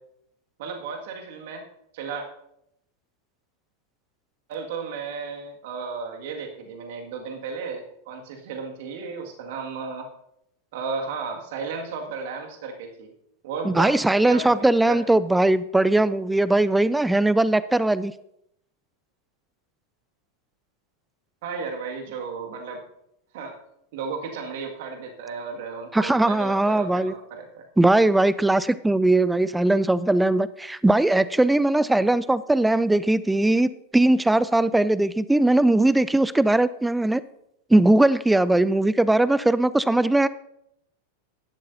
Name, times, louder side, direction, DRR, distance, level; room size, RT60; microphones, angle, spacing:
voice 1, 0.6-1.6 1.9-2.3 4.5-10.1 10.7-13.1 13.4-15.0 21.4-22.8 23.3-23.6 23.9-27.7, right 5 dB, 50° right, 3 dB, 2.0 m, -34 dB
voice 2, 13.7-18.1 25.9-27.1 27.8-37.2 37.7-40.3, right 2 dB, 5° right, 18 dB, 0.3 m, -20 dB
16.0 x 11.5 x 2.7 m, 0.78 s
figure-of-eight pair, 90°, 0 cm